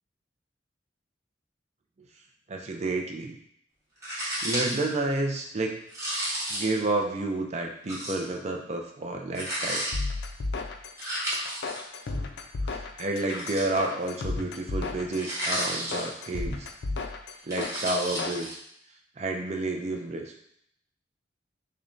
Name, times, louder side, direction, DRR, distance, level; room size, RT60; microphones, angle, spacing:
voice 1, 2.5-3.4 4.4-5.8 6.5-9.9 12.6-16.7 17.5-18.5 19.2-20.3, right 2 dB, 35° right, 2 dB, 0.5 m, -30 dB
sound 1, 4.0-4.9 5.9-6.8 7.9-8.3 9.4-9.9 11.0-11.8 13.2-14.1 15.1-16.3 17.3-18.5, right 1 dB, 15° right, 1.1 m, -32 dB
sound 2, 9.9-18.4, left 3 dB, 65° left, 0.4 m, -34 dB
6.5 x 2.2 x 2.6 m, 0.73 s
head